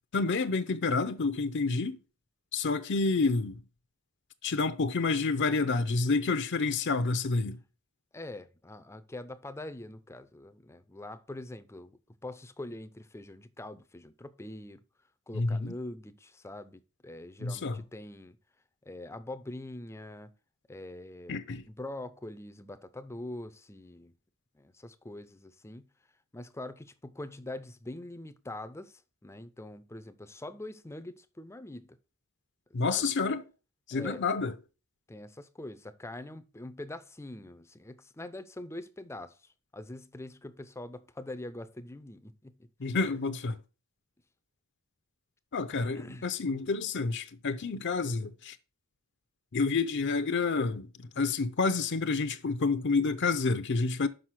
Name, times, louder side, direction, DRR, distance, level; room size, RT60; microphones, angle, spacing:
voice 1, 0.1-2.0 2.5-3.6 4.4-7.6 15.3-15.7 17.4-17.8 21.3-21.6 32.7-33.4 33.9-34.5 42.8-43.6 45.5-48.6 49.5-54.1, left 4 dB, 55° left, 0.6 m, -29 dB
voice 2, 8.1-14.8 15.3-18.4 18.8-20.3 20.7-24.1 24.5-25.9 26.3-32.0 32.7-33.1 33.9-34.2 35.1-43.0 45.8-46.3, left 1 dB, 10° left, 0.5 m, -44 dB
6.3 x 5.3 x 5.7 m
head